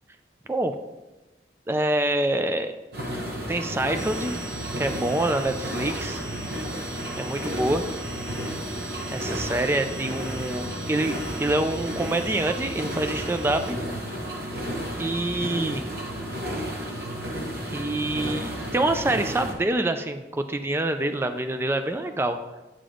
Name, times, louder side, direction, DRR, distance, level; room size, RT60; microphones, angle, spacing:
voice 1, 1.7-2.7 3.5-4.3 4.8-6.2 7.2-7.8 9.1-13.8 15.0-15.8 17.7-22.4, right 1 dB, 15° right, 8 dB, 0.3 m, -26 dB
sound 1, 2.9-19.5, equal, 55° right, 1.0 m, -32 dB
sound 2, 3.9-13.7, right 3 dB, 75° right, 1.3 m, -41 dB
8.6 x 5.1 x 3.8 m, 1.1 s
head